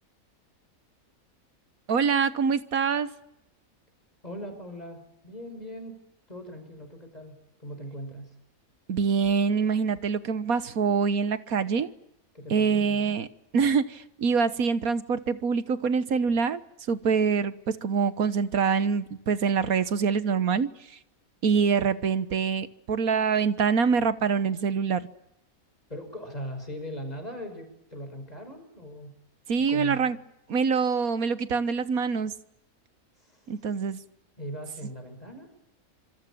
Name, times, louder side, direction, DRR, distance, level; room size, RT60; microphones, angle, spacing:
voice 1, 1.9-3.1 8.9-11.9 12.5-13.3 13.5-16.6 16.9-20.7 21.4-25.1 29.5-30.2 30.5-32.3 33.5-34.0, right 6 dB, 80° right, 13 dB, 1.7 m, -25 dB
voice 2, 4.2-6.0 6.3-8.3 12.3-12.8 25.9-29.1 29.7-30.0 33.2-33.5 34.4-35.5, equal, 25° left, 6 dB, 5.9 m, -39 dB
26.5 x 23.5 x 8.7 m, 0.81 s
omnidirectional pair, 1.5 m